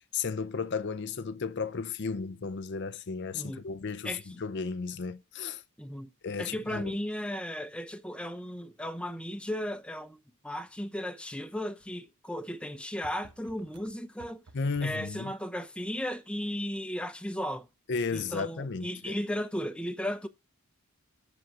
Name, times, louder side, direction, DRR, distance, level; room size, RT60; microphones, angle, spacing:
voice 1, 0.1-5.6 6.2-6.8 14.5-15.3 17.9-19.1, left 5 dB, 50° left, 0.5 m, -34 dB
voice 2, 4.0-4.4 5.8-6.1 6.4-10.2 10.4-14.4 14.8-17.7 18.1-20.3, equal, 5° left, 0.7 m, -35 dB
sound 1, 11.8-11.9 12.6-12.7 13.0-15.2, right 3 dB, 85° right, 1.1 m, -53 dB
7.8 x 7.2 x 6.0 m
head